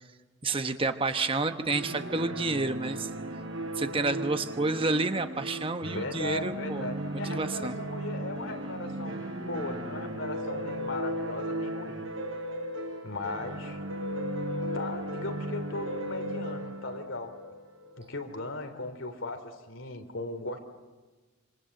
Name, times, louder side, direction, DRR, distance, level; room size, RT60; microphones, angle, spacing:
voice 1, 0.4-3.1 3.7-6.9 7.3-7.8, right 3 dB, 25° right, 8 dB, 1.1 m, -29 dB
sound 1, 1.7-18.4, right 1 dB, 90° right, 6.3 m, -36 dB
voice 2, 5.8-12.0 13.0-13.8 14.7-17.3 18.0-20.6, left 2 dB, 85° left, 6 dB, 3.1 m, -38 dB
26.5 x 26.5 x 7.7 m, 1.3 s
head